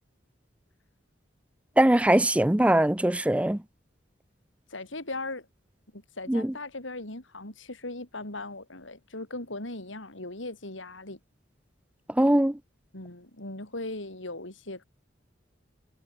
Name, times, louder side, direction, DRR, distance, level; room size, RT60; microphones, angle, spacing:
voice 1, 1.8-3.6 6.3-6.5 12.2-12.5, right 1 dB, 5° right, 0.5 m, -21 dB
voice 2, 4.7-5.5 5.9-11.2 12.9-14.8, left 2 dB, 90° left, 4.8 m, -38 dB
head